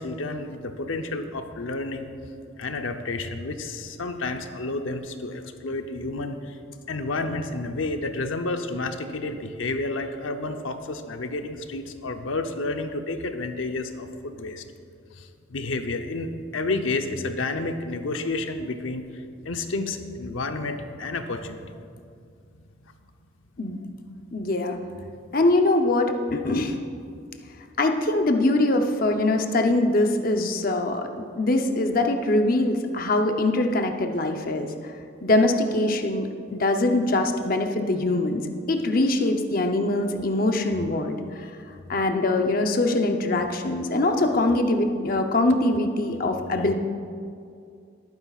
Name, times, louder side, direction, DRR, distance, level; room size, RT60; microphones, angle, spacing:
voice 1, 0.0-2.1 2.6-6.6 6.9-14.6 15.2-19.0 19.4-21.8, left 2 dB, 85° left, 6 dB, 0.8 m, -30 dB
voice 2, 24.3-24.8 25.3-26.8 27.8-34.7 35.2-38.4 38.7-41.5 41.9-46.7, left 2 dB, 45° left, 4 dB, 0.7 m, -23 dB
18.0 x 9.6 x 2.4 m, 2.4 s
head